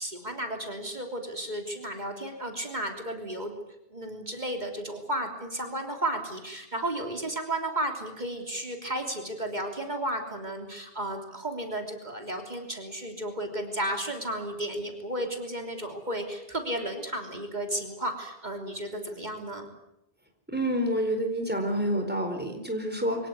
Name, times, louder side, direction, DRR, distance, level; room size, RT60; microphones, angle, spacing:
voice 1, 0.0-3.5 3.9-19.7, right 1 dB, 45° right, 4 dB, 3.5 m, -33 dB
voice 2, 20.5-23.3, equal, 10° right, 5 dB, 4.4 m, -28 dB
24.0 x 17.5 x 9.6 m, 0.86 s
omnidirectional pair, 1.1 m